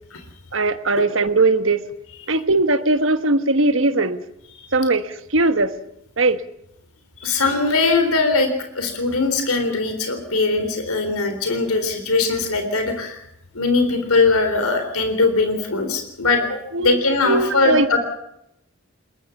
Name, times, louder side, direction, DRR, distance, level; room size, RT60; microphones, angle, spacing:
voice 1, 0.5-1.8 2.3-4.2 4.7-5.7 6.2-6.4 16.7-17.0 17.2-18.0, right 2 dB, 60° right, 11 dB, 1.4 m, -19 dB
voice 2, 7.2-8.5 8.7-13.2 13.5-18.0, left 3 dB, 85° left, 6 dB, 3.7 m, -20 dB
21.5 x 21.0 x 7.2 m, 0.79 s
head